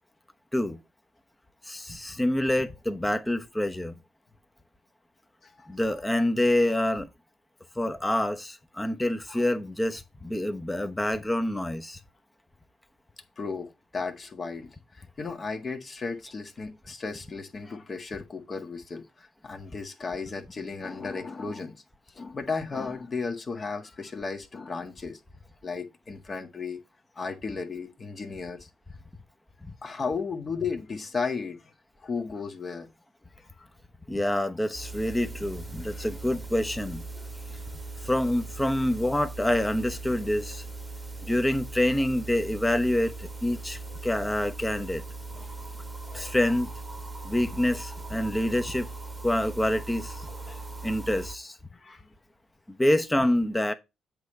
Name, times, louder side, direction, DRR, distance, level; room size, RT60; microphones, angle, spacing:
voice 1, 1.6-3.9 5.7-7.1 7.8-12.0 34.1-37.0 38.0-40.6 41.2-45.0 46.1-46.7 47.2-48.9 49.2-50.3 50.8-51.6 52.8-53.7, left 1 dB, 10° left, 0.9 m, -27 dB
voice 2, 13.4-21.7 22.1-25.2 25.6-26.8 27.2-28.7 29.8-31.6 32.0-32.9 33.6-33.7 35.8-36.1 37.2-37.3 43.8-43.9 45.4-45.5 46.0-46.3 50.3-50.6 51.7-52.1, left 4 dB, 35° left, 1.6 m, -35 dB
sound 1, 34.7-51.3, right 3 dB, 10° right, 1.3 m, -39 dB
7.9 x 3.4 x 6.4 m
cardioid pair, 90°, 0 cm